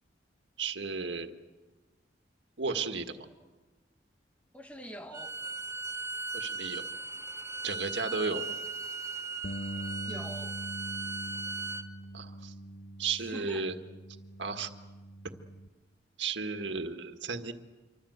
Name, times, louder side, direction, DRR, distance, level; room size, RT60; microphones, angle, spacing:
voice 1, 0.6-1.3 2.6-3.3 6.3-6.9 7.6-8.4 12.1-12.5 13.0-13.7 14.4-14.7 16.2-17.5, right 4 dB, 90° right, 1.8 m, -34 dB
voice 2, 4.5-5.4 10.0-10.6 13.1-13.7, right 1 dB, 10° left, 1.6 m, -45 dB
Bowed string instrument, 5.1-11.9, right 3 dB, 15° right, 1.0 m, -38 dB
Bass guitar, 9.4-15.7, right 1 dB, 50° left, 1.2 m, -43 dB
27.0 x 24.5 x 8.1 m
head